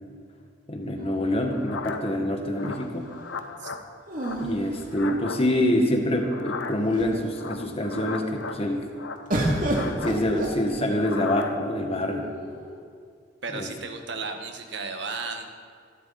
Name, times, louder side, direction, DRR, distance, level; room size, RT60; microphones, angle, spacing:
voice 1, 0.7-3.1 4.4-8.9 10.0-12.3 13.5-13.7, left 1 dB, 30° left, 3 dB, 1.8 m, -26 dB
sound 1, 1.0-2.1 4.1-5.6 6.4-6.5 6.7-7.3 9.3-11.2 12.1-12.8, right 1 dB, 50° right, 2.8 m, -31 dB
sound 2, 1.4-2.2 2.5-3.8 4.1-5.4 6.2-7.0 7.3-8.6 8.9-10.2 10.9-11.6, left 4 dB, 80° left, 1.0 m, -37 dB
voice 2, 13.4-15.5, right 4 dB, 70° right, 5 dB, 1.5 m, -34 dB
25.5 x 12.5 x 4.3 m, 2.1 s
head